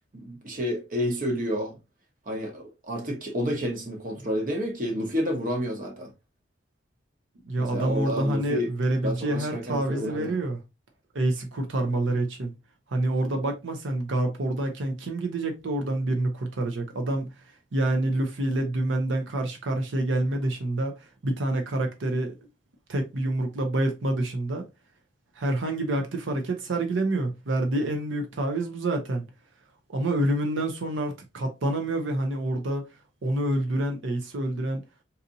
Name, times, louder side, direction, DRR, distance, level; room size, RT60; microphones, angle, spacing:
voice 1, 0.1-1.8 2.3-6.1 7.6-8.7 9.0-10.4, equal, 45° right, 0.9 m, -30 dB
voice 2, 7.5-10.6 11.1-12.5 12.9-17.3 17.7-22.3 22.9-24.6 25.4-29.2 29.9-32.9 33.2-34.8, right 1 dB, 85° right, 0.6 m, -27 dB
4.0 x 2.7 x 2.6 m
head